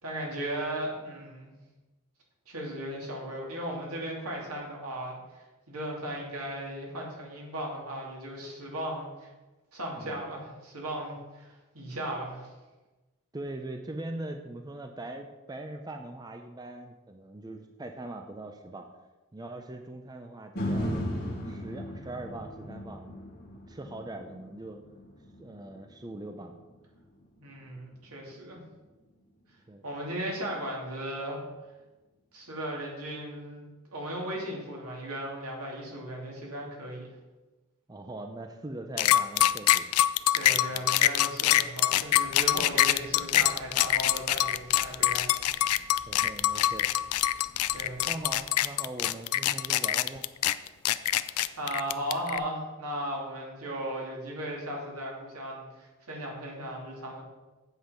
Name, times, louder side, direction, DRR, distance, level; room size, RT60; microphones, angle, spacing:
voice 1, 0.0-1.5 2.5-9.3 9.7-12.5 27.4-28.6 29.8-31.4 32.3-37.1 40.3-45.3 45.6-45.8 47.7-48.1 51.2-57.2, right 1 dB, 80° right, -2 dB, 2.8 m, -36 dB
voice 2, 13.3-18.9 19.3-21.0 21.4-23.3 23.7-24.8 25.4-26.5 29.7-29.8 37.9-39.9 46.1-47.0 48.0-50.2, right 2 dB, 15° right, 5 dB, 0.5 m, -41 dB
sound 1, 20.6-28.7 29.2-29.3, equal, 45° left, 1.9 m, -38 dB
sound 2, 39.0-52.4, left 13 dB, 80° left, 0.4 m, -24 dB
sound 3, 42.0-48.5, equal, 55° right, 1.6 m, -54 dB
8.1 x 7.7 x 5.0 m, 1.1 s
head